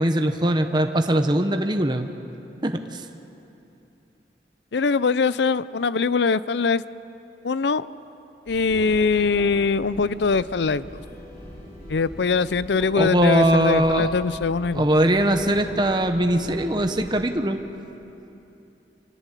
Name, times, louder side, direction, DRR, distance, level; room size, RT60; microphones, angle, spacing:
voice 1, 0.0-2.1 2.6-3.0 13.0-14.1 14.7-17.6, right 1 dB, 25° right, 6 dB, 1.0 m, -21 dB
voice 2, 4.7-6.8 7.4-7.9 8.5-11.0 11.9-14.9, left 4 dB, 80° left, 17 dB, 0.5 m, -22 dB
sound 1, 8.5-17.2, equal, 50° left, 6.8 m, -41 dB
26.5 x 19.5 x 8.3 m, 2.9 s
head